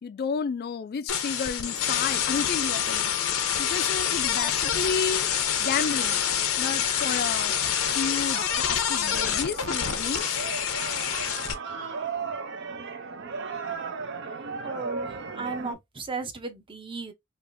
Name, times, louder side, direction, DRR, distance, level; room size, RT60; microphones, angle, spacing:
voice 1, 0.0-5.3 5.6-6.2 6.6-7.5 7.9-10.3, left 5 dB, 50° left, 0.3 m, -32 dB
sound 1, 1.1-11.5, left 9 dB, 90° left, 0.7 m, -27 dB
Wind instrument woodwind instrument, 1.9-5.0 5.4-6.1 6.6-8.8, left 6 dB, 15° left, 0.7 m, -43 dB
sound 2, 4.4-15.7, right 4 dB, 60° right, 0.6 m, -37 dB
voice 2, 14.6-17.1, right 4 dB, 25° right, 0.7 m, -35 dB
3.4 x 2.5 x 2.6 m
head